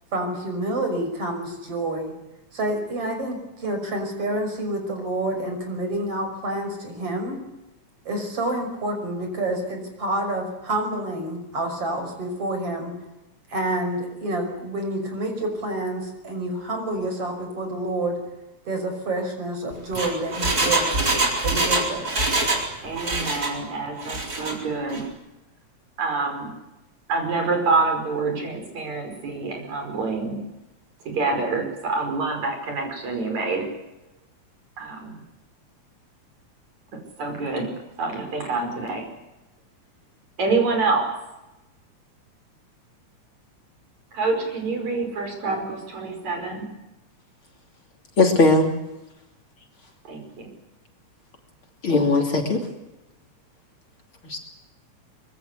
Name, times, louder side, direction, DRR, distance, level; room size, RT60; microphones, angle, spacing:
voice 1, 0.1-2.1 2.5-7.4 8.0-12.9 13.5-18.2 18.7-21.1 21.4-22.2, right 1 dB, 50° right, 5 dB, 6.8 m, -28 dB
Engine, 19.7-22.7 22.9-23.6 24.0-24.5 24.9-25.0, right 2 dB, 30° right, 4.6 m, -24 dB
voice 2, 22.8-25.0 26.0-26.5 27.1-30.4 31.1-33.7 34.8-35.2 37.2-37.7 38.0-39.0 40.4-41.1 44.1-46.7 50.0-50.5, right 3 dB, 65° right, 3 dB, 6.7 m, -26 dB
voice 3, 48.2-48.7 51.8-52.6 54.2-54.4, left 2 dB, 45° left, 3 dB, 3.6 m, -18 dB
24.5 x 22.5 x 8.2 m, 0.97 s
omnidirectional pair, 3.4 m